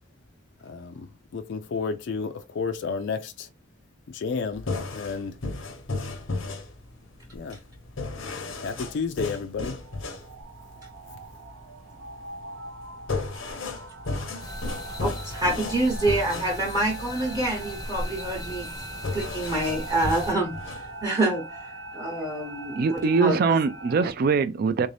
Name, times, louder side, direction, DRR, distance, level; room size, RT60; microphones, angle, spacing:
voice 1, 0.6-3.5 4.1-5.4 7.3-7.6 8.5-9.8 11.1-11.2, left 5 dB, 60° left, 0.4 m, -32 dB
sound 1, 4.5-21.0, left 3 dB, 85° left, 0.8 m, -35 dB
sound 2, 9.8-24.1, right 3 dB, 85° right, 0.8 m, -41 dB
sound 3, 14.4-20.3, left 1 dB, 20° left, 0.6 m, -38 dB
voice 2, 15.0-18.7 19.1-23.6, right 1 dB, 20° right, 0.8 m, -27 dB
voice 3, 22.8-24.9, right 4 dB, 50° right, 0.3 m, -22 dB
3.5 x 2.6 x 3.2 m
head